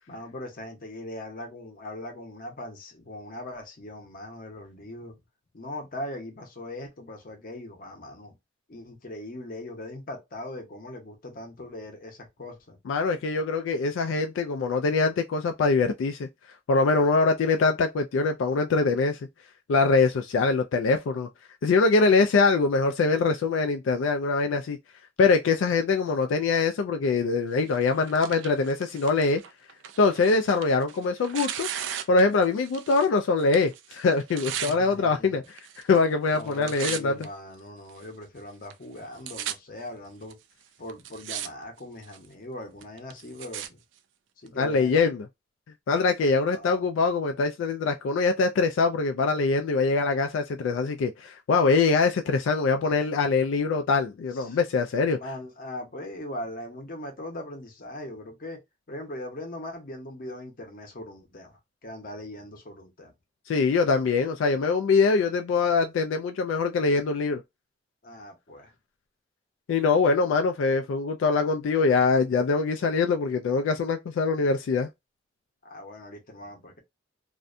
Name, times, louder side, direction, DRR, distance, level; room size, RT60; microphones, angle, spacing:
voice 1, 0.1-5.2 5.5-8.3 8.7-12.8 34.6-35.4 36.3-40.4 40.8-43.8 44.4-45.0 46.5-46.9 54.3-54.6 55.2-58.6 58.9-63.1 68.0-68.7 75.6-76.8, left 1 dB, 50° left, 0.8 m, -40 dB
voice 2, 12.9-16.3 16.7-19.2 19.7-21.3 21.6-24.8 25.2-29.4 30.0-31.7 32.1-35.4 35.9-37.2 44.6-45.3 45.9-55.2 63.5-67.4 69.7-74.9, left 4 dB, 90° left, 0.3 m, -23 dB
Tearing, 27.7-33.1 33.4-34.8 35.5-36.0 36.3-37.2 37.9-38.0 38.7-38.8 39.0-39.5 40.3-40.4 40.9-41.5 41.8-42.3 42.8-43.7 44.5-44.6, right 10 dB, 75° right, 0.3 m, -36 dB
2.5 x 2.2 x 2.5 m
head